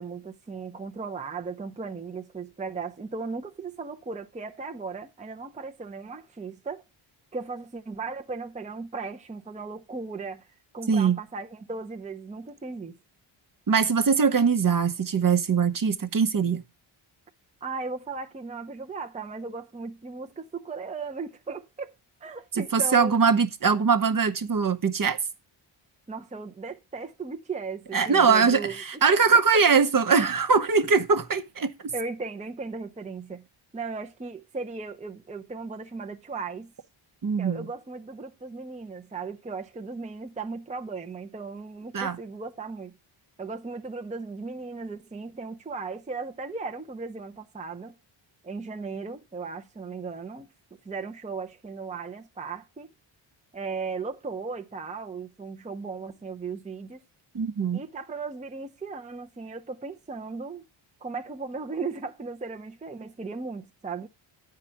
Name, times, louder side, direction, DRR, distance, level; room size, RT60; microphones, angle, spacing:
voice 1, 0.0-6.8 7.3-10.5 10.7-13.0 17.6-21.9 22.2-23.2 26.1-28.8 29.5-29.6 31.9-33.4 33.7-36.7 37.4-42.9 43.4-48.0 48.4-50.5 50.8-52.9 53.5-57.0 57.7-60.6 61.0-64.1, right 4 dB, 15° right, 0.6 m, -36 dB
voice 2, 10.9-11.2 13.7-16.6 22.5-25.2 27.9-31.9 37.2-37.7 41.9-42.2 57.3-57.8, right 5 dB, 40° right, 0.9 m, -22 dB
9.8 x 4.9 x 5.7 m
cardioid pair, 95°, 49 cm